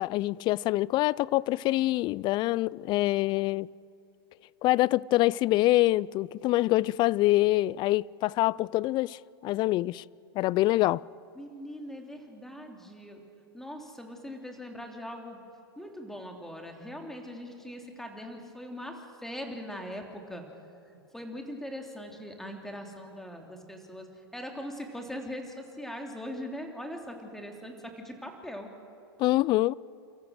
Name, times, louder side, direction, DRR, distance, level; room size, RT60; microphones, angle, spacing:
voice 1, 0.0-3.7 4.6-10.0 10.3-11.0 29.2-29.8, left 17 dB, 35° left, 0.4 m, -25 dB
voice 2, 11.3-13.2 13.5-15.4 15.8-20.4 20.8-24.1 24.3-28.7, equal, 5° left, 3.0 m, -41 dB
29.5 x 14.5 x 6.5 m
hypercardioid pair, 110°, 13 cm